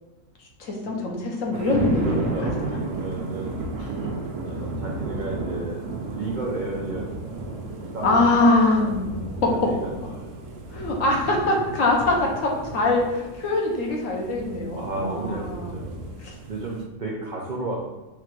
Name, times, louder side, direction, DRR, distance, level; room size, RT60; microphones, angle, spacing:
voice 1, 0.6-2.5 3.8-3.9 8.0-9.1 10.7-15.8 16.2-16.3, left 2 dB, 65° left, -1 dB, 1.2 m, -23 dB
sound 1, 1.5-16.8, right 3 dB, 85° right, 1.2 m, -33 dB
voice 2, 2.0-3.6 4.4-5.8 6.1-8.3 8.8-8.9 9.4-10.3 14.7-16.0 16.5-17.8, right 2 dB, 60° right, -3 dB, 0.5 m, -33 dB
4.6 x 2.5 x 4.5 m, 1.1 s
omnidirectional pair, 1.6 m